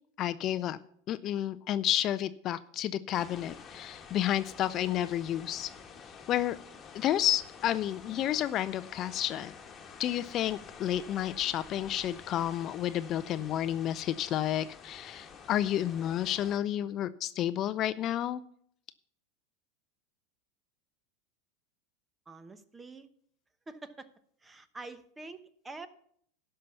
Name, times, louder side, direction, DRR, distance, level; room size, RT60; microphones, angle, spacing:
voice 1, 0.2-0.8 1.1-5.7 6.3-6.6 6.9-9.5 10.0-18.4, left 11 dB, 40° left, 15 dB, 0.4 m, -31 dB
sound 1, 3.1-16.6, left 6 dB, 25° left, 1.6 m, -49 dB
voice 2, 22.3-23.1 23.7-24.1 24.4-25.9, right 3 dB, 15° right, 13 dB, 1.0 m, -46 dB
12.5 x 5.6 x 7.0 m, 0.64 s
hypercardioid pair, 100°, 0 cm